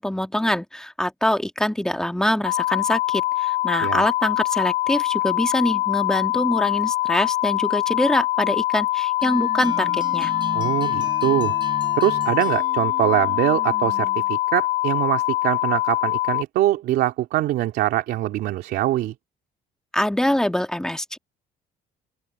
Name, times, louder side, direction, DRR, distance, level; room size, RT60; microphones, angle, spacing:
voice 1, 0.0-10.3 19.9-21.2, left 1 dB, 5° left, 1.6 m, -24 dB
sound 1, 2.4-16.4, left 17 dB, 60° left, 0.6 m, -23 dB
sound 2, 9.2-14.3, right 4 dB, 30° right, 3.1 m, -37 dB
voice 2, 10.5-11.6 12.0-19.1, right 14 dB, 75° right, 2.8 m, -23 dB
open air
cardioid pair, 110°, 17 cm